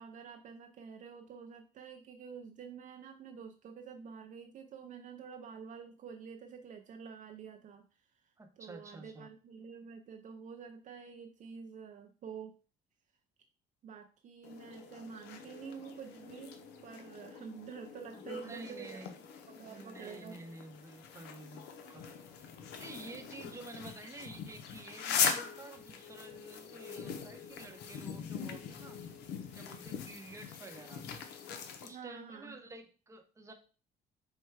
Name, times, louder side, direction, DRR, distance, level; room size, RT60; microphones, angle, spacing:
voice 1, 0.0-7.8 8.2-12.5 13.8-19.0 19.5-20.6 31.9-32.6, right 6 dB, 50° right, 5 dB, 0.5 m, -48 dB
voice 2, 8.4-9.3 18.2-19.1 19.7-22.2 22.8-29.0 29.5-31.1 31.8-33.5, right 2 dB, 15° right, 5 dB, 0.7 m, -50 dB
sound 1, 14.4-31.9, left 6 dB, 80° left, 0.7 m, -41 dB
4.5 x 2.2 x 4.6 m, 0.36 s
cardioid pair, 110°, 17 cm